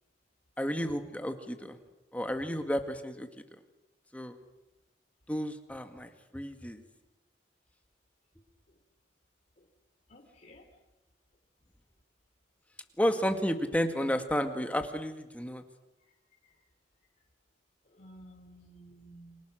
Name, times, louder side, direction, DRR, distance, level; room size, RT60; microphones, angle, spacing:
voice 1, 0.6-1.8 2.1-3.3 4.1-4.3 5.3-6.8 13.0-15.6, equal, 10° left, 6 dB, 1.9 m, -32 dB
voice 2, 10.1-10.6 16.0-16.1 16.4-16.6 17.8-19.4, right 1 dB, 40° left, 0 dB, 2.9 m, -54 dB
29.5 x 26.0 x 6.5 m, 1.0 s
head